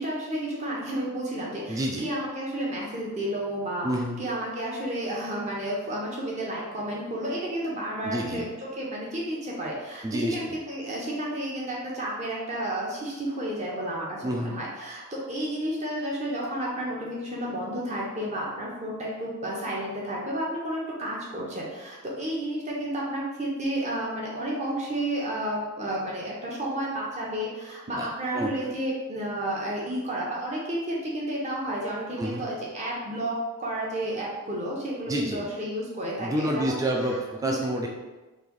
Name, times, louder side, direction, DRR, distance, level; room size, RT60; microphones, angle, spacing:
voice 1, 0.0-36.8 37.4-37.5, right 1 dB, 30° right, -4 dB, 0.8 m, -31 dB
voice 2, 1.7-2.1 3.8-4.2 8.0-8.4 10.0-10.4 14.2-14.6 27.9-28.1 28.3-28.7 32.2-32.4 35.1-35.4 36.2-37.9, right 1 dB, 15° right, 0 dB, 0.3 m, -28 dB
3.2 x 2.5 x 3.7 m, 1.2 s
head